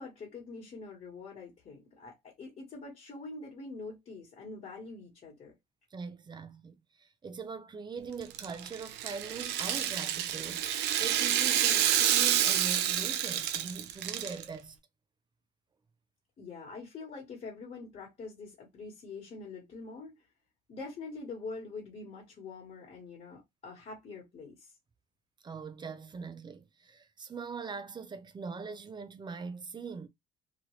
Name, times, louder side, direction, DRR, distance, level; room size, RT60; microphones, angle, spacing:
voice 1, 0.0-5.5 16.4-20.1 20.7-24.7, left 3 dB, 45° left, 1.4 m, -44 dB
voice 2, 5.9-10.6 11.0-14.8 25.4-30.1, right 5 dB, 25° right, 0.5 m, -42 dB
Rattle (instrument), 8.2-14.4, right 10 dB, 90° right, 0.5 m, -29 dB
2.9 x 2.4 x 3.1 m
cardioid pair, 110°, 17 cm